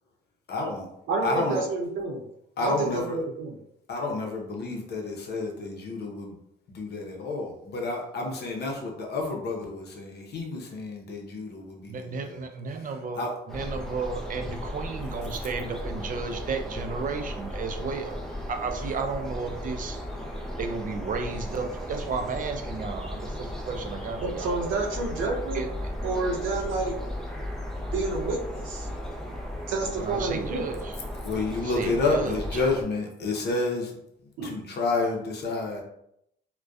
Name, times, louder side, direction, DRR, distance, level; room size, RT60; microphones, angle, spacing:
voice 1, 0.5-0.9 1.2-1.6 2.6-3.2 3.9-6.3 6.7-12.4 13.2-13.3 31.2-33.9 34.4-35.8, left 3 dB, 55° left, 0 dB, 0.7 m, -30 dB
voice 2, 1.1-2.2 2.6-3.6 24.2-25.6 26.0-27.0 27.8-28.9 29.7-30.7 34.4-34.5, right 3 dB, 80° right, 0 dB, 0.6 m, -29 dB
voice 3, 11.9-18.2 18.5-20.0 20.6-24.6 25.5-25.7 30.0-31.0 31.6-32.6, right 4 dB, 45° right, 5 dB, 0.4 m, -33 dB
sound 1, 13.5-32.8, left 1 dB, ahead, 0.6 m, -35 dB
2.5 x 2.2 x 2.3 m, 0.76 s
cardioid pair, 90°, 20 cm